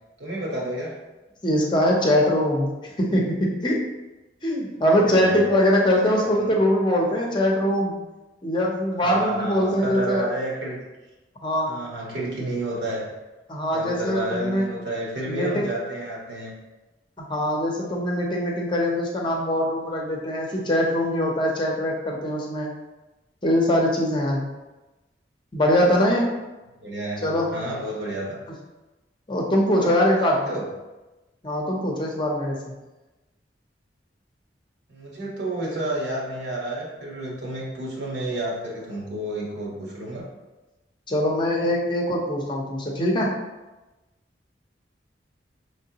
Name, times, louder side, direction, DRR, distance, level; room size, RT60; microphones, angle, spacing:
voice 1, 0.2-1.0 5.1-5.3 6.0-6.5 9.0-10.8 11.7-13.1 13.7-16.5 26.8-28.4 29.7-30.6 34.9-40.3, right 1 dB, 70° right, -3 dB, 1.3 m, -31 dB
voice 2, 1.4-3.8 4.4-8.0 8.4-10.3 11.4-11.7 13.5-14.7 15.3-15.7 17.2-22.7 23.4-24.5 25.5-26.4 27.2-27.5 29.3-30.5 31.4-32.7 41.1-43.3, equal, 25° left, -1 dB, 0.7 m, -22 dB
5.6 x 3.2 x 2.9 m, 1.1 s
head